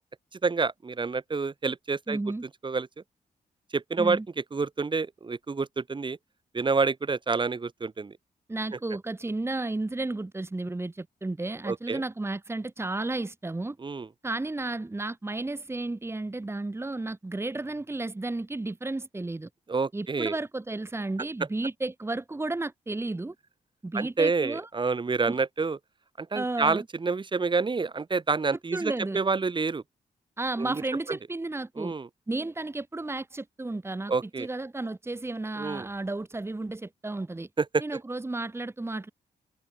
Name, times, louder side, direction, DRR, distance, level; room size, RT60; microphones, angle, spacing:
voice 1, 0.4-2.2 2.6-2.9 3.7-6.2 6.5-8.1 11.7-12.0 13.8-14.1 19.7-20.3 23.9-25.8 26.2-29.8 30.6-30.8 31.1-31.2 31.8-32.1 34.1-34.5 35.6-35.9 37.6-37.8, right 4 dB, 30° right, 3.4 m, -28 dB
voice 2, 2.1-2.4 4.0-4.2 8.5-13.8 14.2-19.5 19.9-23.3 23.8-24.7 26.3-26.8 28.7-29.2 30.4-31.9 32.3-37.5 37.8-39.1, right 2 dB, 15° right, 3.0 m, -33 dB
wide cardioid pair, 120°, 15 cm